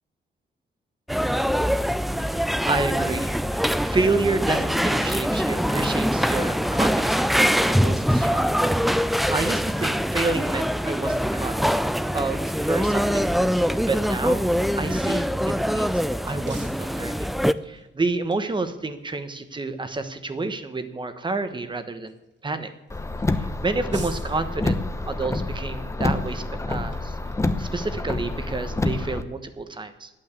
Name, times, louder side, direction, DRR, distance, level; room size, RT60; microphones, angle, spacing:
sound 1, 1.1-17.5, equal, ahead, 0.4 m, -23 dB
voice 1, 2.2-8.7 9.0-11.5 12.1-13.3 13.6-14.5 14.8-17.3 17.6-22.1 22.4-22.7 23.3-27.2 27.6-30.1, right 3 dB, 25° right, 9 dB, 1.2 m, -29 dB
sound 2, 15.1-29.6, right 5 dB, 65° right, 2.4 m, -53 dB
Car, 22.9-29.2, left 2 dB, 15° left, 0.8 m, -28 dB
11.5 x 8.9 x 8.3 m, 1.0 s
wide cardioid pair, 135°, 20 cm